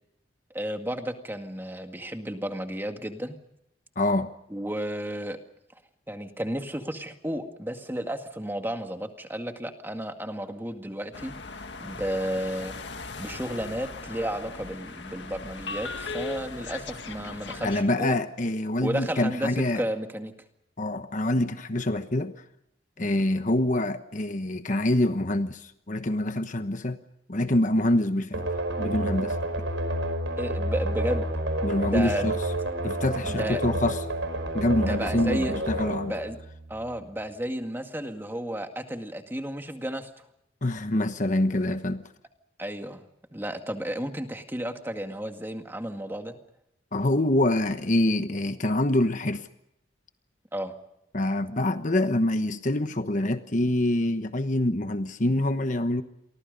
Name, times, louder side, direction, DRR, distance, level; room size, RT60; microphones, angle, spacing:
voice 1, 0.5-3.4 4.5-5.4 6.1-11.3 11.8-12.8 13.2-18.2 18.8-19.5 19.8-20.3 23.0-23.1 30.4-31.3 31.8-32.3 33.2-33.6 34.8-35.5 36.0-36.4 36.7-40.1 42.6-43.0 43.3-46.4 50.5-50.7, equal, 10° right, 5 dB, 2.0 m, -32 dB
voice 2, 4.0-4.3 17.6-19.8 20.8-22.3 23.0-27.0 27.3-28.5 28.8-29.4 31.6-32.4 32.8-34.0 34.5-36.1 40.6-42.0 46.9-49.5 51.1-56.0, left 1 dB, 40° left, 9 dB, 1.1 m, -25 dB
sound 1, 11.1-17.8, left 4 dB, 65° left, 2.0 m, -38 dB
sound 2, 28.3-37.0, right 1 dB, 85° right, 5.2 m, -30 dB
30.0 x 24.0 x 5.4 m, 0.81 s
head